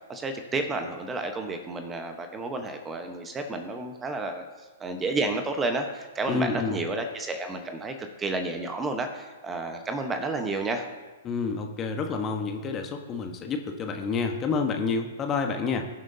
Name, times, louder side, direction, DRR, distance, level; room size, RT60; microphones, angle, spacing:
voice 1, 0.1-4.4 4.8-10.8, right 3 dB, 15° right, 6 dB, 1.1 m, -31 dB
voice 2, 6.3-6.8 11.2-15.9, left 4 dB, 25° left, 4 dB, 1.2 m, -29 dB
21.0 x 7.3 x 2.8 m, 1.3 s
figure-of-eight pair, 110°, 0 cm